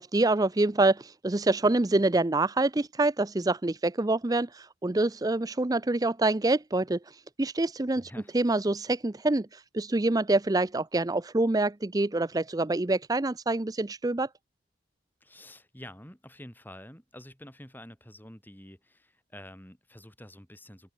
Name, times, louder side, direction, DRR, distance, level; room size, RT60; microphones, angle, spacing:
voice 1, 0.0-14.3, right 2 dB, 20° right, 0.5 m, -26 dB
voice 2, 8.0-8.3 15.2-20.9, left 1 dB, 10° left, 7.1 m, -48 dB
open air
head